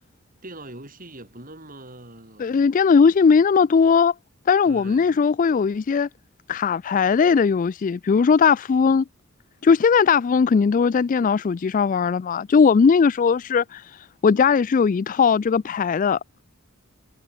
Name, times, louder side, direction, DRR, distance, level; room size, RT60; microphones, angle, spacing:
voice 1, 0.4-2.7 4.6-5.2, right 1 dB, 40° right, 7.8 m, -42 dB
voice 2, 2.4-4.1 4.5-6.1 6.5-9.0 9.6-13.8 14.2-16.2, left 5 dB, 35° left, 0.3 m, -18 dB
head